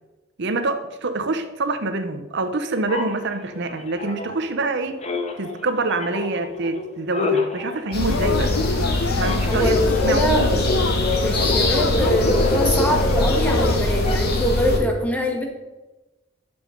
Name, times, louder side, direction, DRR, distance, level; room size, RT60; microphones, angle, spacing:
voice 1, 0.4-5.0 5.4-8.5 9.2-9.7 10.0-10.5, right 3 dB, 60° right, 8 dB, 0.8 m, -26 dB
sound 1, 2.9-4.7 5.0-14.5, left 2 dB, 35° left, 1.1 m, -28 dB
sound 2, 7.9-14.8, left 2 dB, 55° left, 1.9 m, -22 dB
Yell / Cheering, 8.0-14.2, left 3 dB, 85° left, 0.7 m, -29 dB
voice 2, 9.5-10.5 11.2-15.4, equal, 10° left, 2 dB, 1.8 m, -23 dB
10.5 x 7.1 x 5.2 m, 1.1 s
head